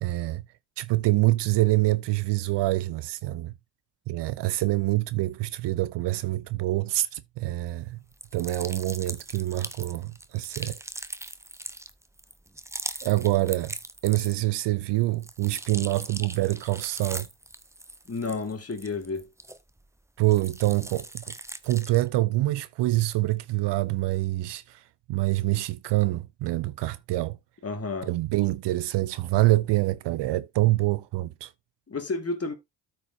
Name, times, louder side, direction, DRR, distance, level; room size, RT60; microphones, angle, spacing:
voice 1, 0.0-0.4 0.8-3.5 4.1-8.0 8.3-10.8 13.0-13.7 14.0-17.3 20.2-21.3 21.6-27.4 28.0-31.5, right 18 dB, 55° right, 0.6 m, -26 dB
sound 1, 8.1-14.6 15.0-19.9 20.2-22.1, right 1 dB, 5° right, 0.7 m, -40 dB
voice 2, 18.1-19.3 27.6-28.1 31.9-32.5, left 3 dB, 30° left, 1.8 m, -31 dB
13.5 x 4.6 x 2.6 m
hypercardioid pair, 45°, 50 cm